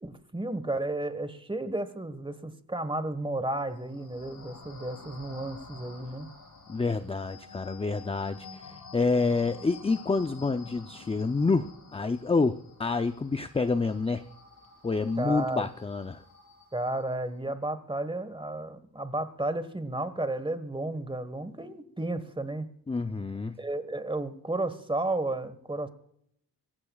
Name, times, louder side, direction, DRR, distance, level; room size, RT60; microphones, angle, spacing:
voice 1, 0.0-6.3 15.2-15.7 16.7-22.7 23.6-25.9, right 2 dB, 15° right, 12 dB, 1.4 m, -33 dB
sound 1, 3.7-17.1, left 4 dB, 70° left, 4.5 m, -50 dB
voice 2, 6.7-14.3 14.8-16.2 22.9-23.6, left 3 dB, 15° left, 9 dB, 0.5 m, -28 dB
25.5 x 14.5 x 2.4 m, 0.69 s
wide cardioid pair, 100°, 37 cm